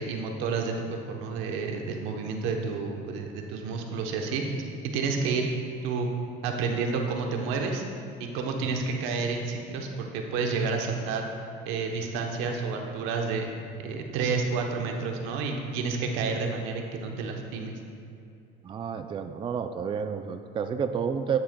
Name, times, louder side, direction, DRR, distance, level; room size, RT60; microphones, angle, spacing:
voice 1, 0.0-4.7 4.9-5.5 5.8-6.1 6.4-7.8 8.2-11.2 11.7-13.5 13.8-17.8, right 4 dB, 80° right, 3 dB, 0.9 m, -30 dB
voice 2, 18.6-21.4, right 7 dB, 25° right, 8 dB, 0.3 m, -30 dB
10.5 x 7.0 x 2.2 m, 2.6 s
supercardioid pair, 100°, 20 cm